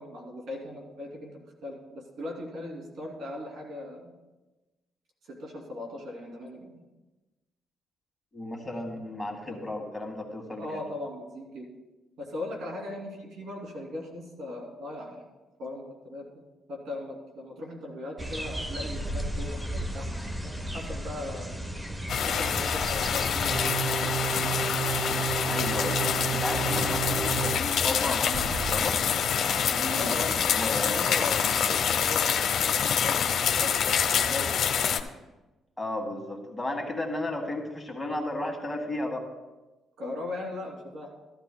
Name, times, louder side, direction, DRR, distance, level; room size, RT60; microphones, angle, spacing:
voice 1, 0.0-4.1 5.3-6.8 9.5-9.6 10.5-11.7 12.2-15.2 15.6-16.3 16.7-21.5 22.2-23.6 29.9-34.5 40.0-41.1, left 2 dB, 75° right, 0 dB, 2.8 m, -39 dB
voice 2, 8.3-10.8 25.5-29.0 29.4-31.0 35.8-39.3, left 1 dB, 10° left, 1 dB, 1.9 m, -34 dB
sound 1, 18.2-23.6, equal, 10° right, 0.8 m, -34 dB
sound 2, 22.1-35.0, left 7 dB, 65° left, 0.7 m, -26 dB
sound 3, 23.5-27.6 28.3-28.8, right 8 dB, 40° right, 0.4 m, -32 dB
15.5 x 12.0 x 2.2 m, 1.1 s
cardioid pair, 90°, 0 cm